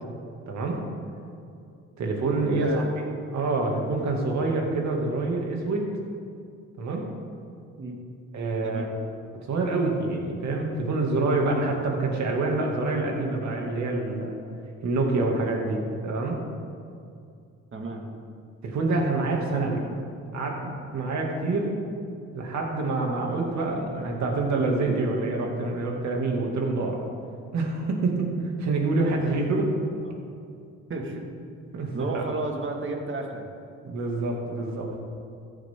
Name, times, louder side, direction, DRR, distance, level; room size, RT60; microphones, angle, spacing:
voice 1, 0.5-0.8 2.0-3.0 3.3-5.9 6.8-7.1 8.3-8.9 9.5-14.4 14.8-16.4 18.6-19.8 20.3-21.7 22.3-27.0 27.5-28.3 28.6-29.7 31.7-32.2 33.8-34.9, right 2 dB, 65° right, 0 dB, 2.4 m, -26 dB
voice 2, 2.5-2.9 7.8-8.0 8.6-8.9 17.7-18.0 30.0-30.2 30.9-31.2 31.9-33.5, right 2 dB, 40° right, 1 dB, 2.1 m, -32 dB
14.5 x 11.0 x 3.8 m, 2.4 s
cardioid pair, 90°, 30 cm